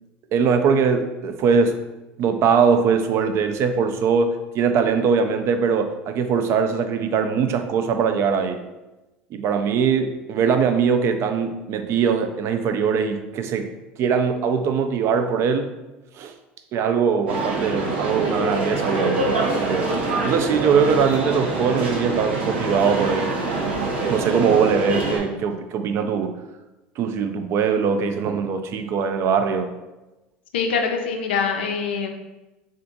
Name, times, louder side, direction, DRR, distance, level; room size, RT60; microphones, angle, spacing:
voice 1, 0.3-1.8 2.2-8.6 9.3-13.7 14.0-15.7 16.2-16.3 16.7-23.4 24.1-26.4 27.0-29.7, right 6 dB, 50° right, 8 dB, 0.3 m, -21 dB
sound 1, 17.3-25.2, right 2 dB, 90° right, 0.6 m, -25 dB
voice 2, 30.5-32.1, left 5 dB, 85° left, 4 dB, 0.4 m, -24 dB
3.5 x 2.4 x 2.6 m, 1.0 s
hypercardioid pair, 80°, 6 cm